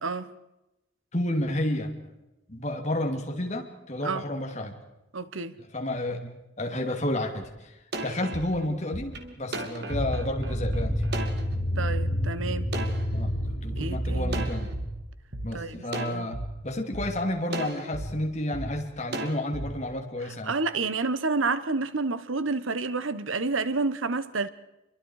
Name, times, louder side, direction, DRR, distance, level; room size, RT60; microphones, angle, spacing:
voice 1, 1.1-1.9 2.5-4.7 5.6-11.0 13.1-14.7 15.4-20.6, left 1 dB, 35° left, 3.0 m, -31 dB
voice 2, 5.1-5.5 11.8-12.7 13.7-14.4 15.5-16.3 20.4-24.5, right 3 dB, 85° right, 1.2 m, -29 dB
sound 1, 7.4-7.5 7.9-11.7 12.1-12.3 12.7-13.9 14.3-14.9 15.3-15.5 15.9-16.5 16.9-17.1 17.5-18.1 18.5-18.7 19.1-19.7, right 2 dB, 55° right, 2.6 m, -35 dB
sound 2, 9.9-15.1, equal, 15° left, 3.6 m, -29 dB
28.0 x 23.5 x 4.9 m
head